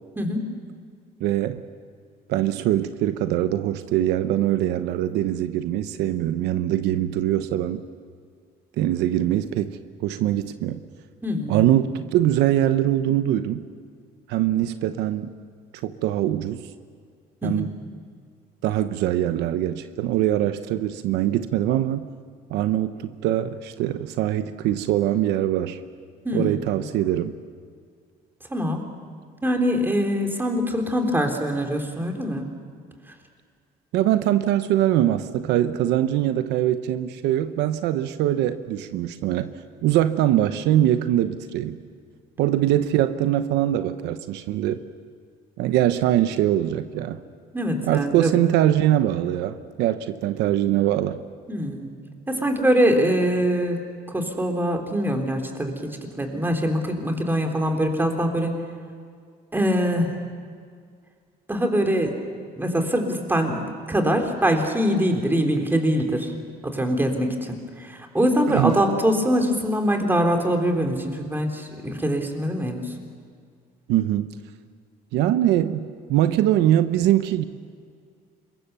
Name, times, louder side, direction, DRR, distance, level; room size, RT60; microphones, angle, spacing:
voice 1, 0.2-0.5 11.2-11.7 17.4-17.7 26.2-26.8 28.5-28.8 29.4-32.5 47.5-48.4 51.5-51.9 52.3-58.6 59.5-60.3 61.5-62.1 62.6-66.3 66.6-72.9, equal, 10° right, 3 dB, 3.6 m, -23 dB
voice 2, 1.2-1.6 2.3-7.8 8.8-10.8 11.5-13.6 14.3-15.3 15.8-16.6 17.4-17.7 18.6-22.1 22.5-25.8 26.3-27.3 33.9-39.5 39.8-41.8 42.4-44.8 45.6-47.2 47.8-51.2 68.5-68.8 73.9-74.3 75.1-77.4, right 12 dB, 90° right, 10 dB, 0.9 m, -22 dB
26.5 x 22.5 x 6.9 m, 2.1 s
cardioid pair, 110°, 17 cm